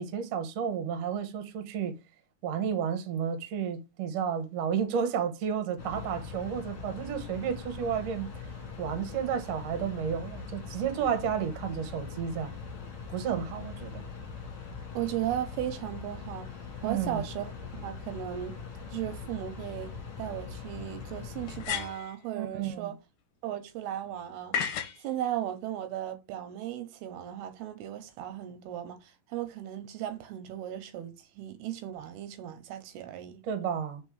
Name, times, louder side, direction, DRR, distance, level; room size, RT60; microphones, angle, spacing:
voice 1, 0.0-2.0 2.4-8.4 8.8-12.5 13.1-14.0 16.8-17.2 22.3-22.9 33.4-34.0, right 7 dB, 65° right, 1.6 m, -32 dB
sound 1, 5.8-21.7, left 5 dB, 50° left, 2.1 m, -42 dB
voice 2, 14.9-16.5 16.8-18.5 18.9-19.9 20.2-23.0 23.4-33.4, right 11 dB, 85° right, 2.7 m, -36 dB
sound 2, 19.6-19.7 21.5-22.2 24.5-25.0, left 8 dB, 70° left, 2.0 m, -32 dB
5.3 x 4.1 x 4.7 m
omnidirectional pair, 4.5 m